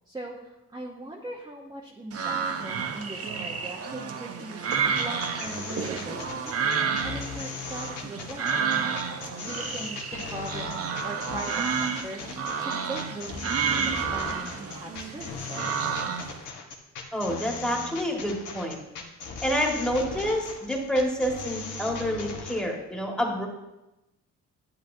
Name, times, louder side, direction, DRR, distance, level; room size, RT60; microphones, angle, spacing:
voice 1, 0.1-4.7 5.0-6.6 7.0-8.6 9.4-15.8, right 2 dB, 15° right, -3 dB, 1.1 m, -40 dB
sound 1, 2.1-16.4, right 6 dB, 50° right, 0.9 m, -30 dB
sound 2, 4.6-22.6, left 5 dB, 85° left, 1.3 m, -38 dB
voice 2, 17.1-18.8 19.4-23.5, equal, 5° left, -1 dB, 1.8 m, -28 dB
10.5 x 8.4 x 2.7 m, 0.97 s
cardioid pair, 90°, 30 cm